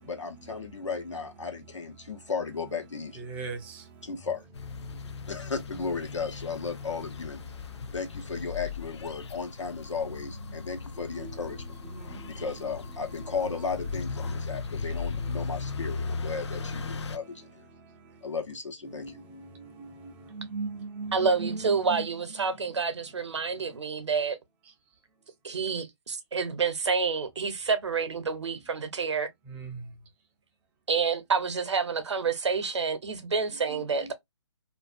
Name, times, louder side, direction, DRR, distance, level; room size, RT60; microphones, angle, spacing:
voice 1, 0.0-3.3 4.0-4.4 5.3-7.4 7.9-11.6 12.3-17.6 18.2-19.2, left 5 dB, 85° left, 1.0 m, -35 dB
voice 2, 3.3-3.6 11.2-11.3 19.0-19.1 20.4-21.6 21.9-22.0 33.7-33.8, right 3 dB, 10° right, 0.4 m, -35 dB
sound 1, 4.5-17.2, left 4 dB, 70° left, 0.4 m, -37 dB
voice 3, 21.1-24.4 25.4-29.3 30.9-34.1, right 5 dB, 70° right, 0.8 m, -28 dB
2.5 x 2.3 x 2.4 m
figure-of-eight pair, 140°, 15 cm